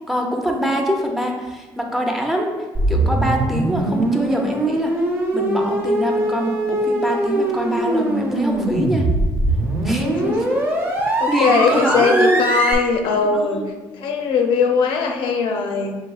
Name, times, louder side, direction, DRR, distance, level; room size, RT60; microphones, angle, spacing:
voice 1, 0.1-2.5 2.9-4.9 5.3-9.1 9.8-10.1 10.4-10.5 11.1-12.4 13.3-13.7, right 1 dB, 5° right, 1 dB, 0.5 m, -23 dB
sound 1, 2.7-12.7, right 1 dB, 25° right, 0.8 m, -21 dB
voice 2, 10.0-10.4 11.2-13.6 14.0-15.9, left 5 dB, 80° left, 3 dB, 0.6 m, -20 dB
6.6 x 2.7 x 2.3 m, 1.3 s
cardioid pair, 145°, 8 cm